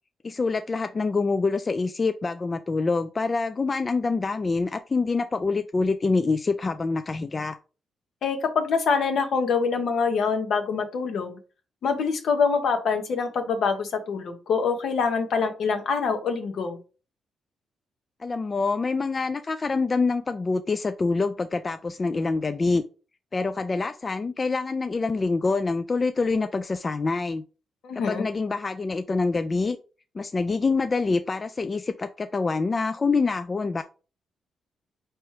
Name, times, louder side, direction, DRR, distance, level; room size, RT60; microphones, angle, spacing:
voice 1, 0.2-7.6 18.2-22.8 23.3-27.4 27.9-29.8 30.1-33.8, left 3 dB, 35° left, 0.3 m, -26 dB
voice 2, 8.2-11.4 11.8-16.8 27.8-28.2, left 5 dB, 70° left, 0.9 m, -25 dB
4.5 x 2.9 x 3.2 m
cardioid pair, 65°, 0 cm